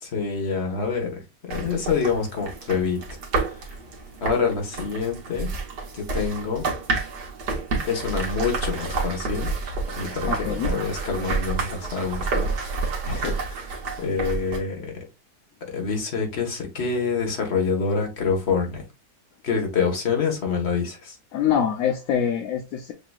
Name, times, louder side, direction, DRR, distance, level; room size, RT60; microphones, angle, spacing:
voice 1, 0.0-3.0 3.6-3.7 4.2-5.5 5.9-6.6 7.9-9.5 9.9-12.8 13.1-14.9 15.7-18.8 19.4-21.2, left 5 dB, 40° left, 1.6 m, -26 dB
sound 1, 1.5-14.6, right 3 dB, 80° right, 1.8 m, -29 dB
voice 2, 10.3-10.8 21.3-22.9, left 8 dB, 65° left, 1.0 m, -24 dB
6.6 x 2.9 x 2.3 m
omnidirectional pair, 1.7 m